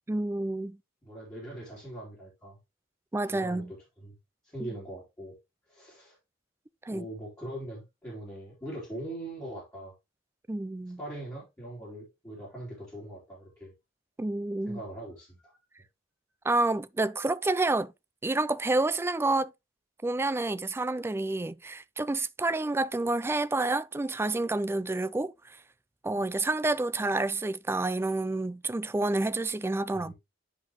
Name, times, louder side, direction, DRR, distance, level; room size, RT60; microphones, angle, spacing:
voice 1, 0.1-0.8 3.1-3.7 4.6-4.7 6.9-7.1 10.5-11.0 14.2-14.8 16.4-17.9 18.2-19.5 20.0-25.6 26.0-30.1, right 2 dB, 10° right, 0.3 m, -29 dB
voice 2, 1.0-2.6 3.3-3.6 4.0-4.1 4.4-5.4 5.7-6.2 6.9-9.9 11.0-13.7 14.7-15.5 29.9-30.1, right 1 dB, 15° left, 3.4 m, -41 dB
10.5 x 4.7 x 3.1 m
head